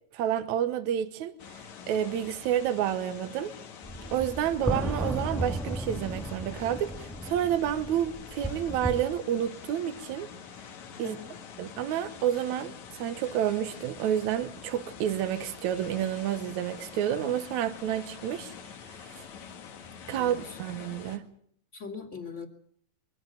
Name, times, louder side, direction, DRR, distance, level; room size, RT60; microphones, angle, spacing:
voice 1, 0.1-3.5 4.1-10.3 11.0-11.2 11.6-18.5 18.9-19.2 20.1-21.2, right 10 dB, 75° right, 2.4 m, -30 dB
sound 1, 1.4-21.2, left 7 dB, 70° left, 3.1 m, -46 dB
sound 2, 3.8-9.0, right 1 dB, ahead, 0.5 m, -35 dB
voice 2, 11.0-11.4 20.2-20.6 21.7-22.5, left 5 dB, 25° left, 2.5 m, -41 dB
23.5 x 15.0 x 9.1 m
omnidirectional pair, 3.5 m